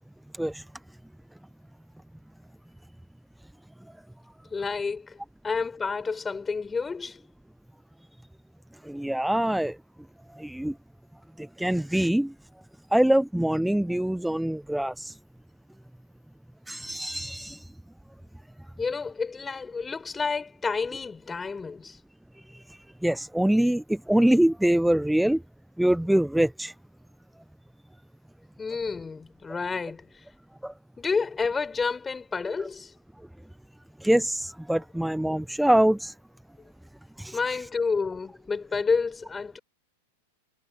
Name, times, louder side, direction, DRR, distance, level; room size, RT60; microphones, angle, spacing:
voice 1, 4.5-5.2 5.4-7.2 18.8-22.0 28.6-30.2 31.0-32.9 37.3-39.6, left 4 dB, 15° left, 6.6 m, -30 dB
voice 2, 8.9-9.8 10.4-10.7 11.4-12.3 12.9-15.2 16.7-17.7 22.5-22.6 23.0-25.4 25.8-26.7 30.6-30.7 34.0-36.1 37.2-37.7, right 1 dB, ahead, 0.7 m, -24 dB
hypercardioid pair, 100°, 0 cm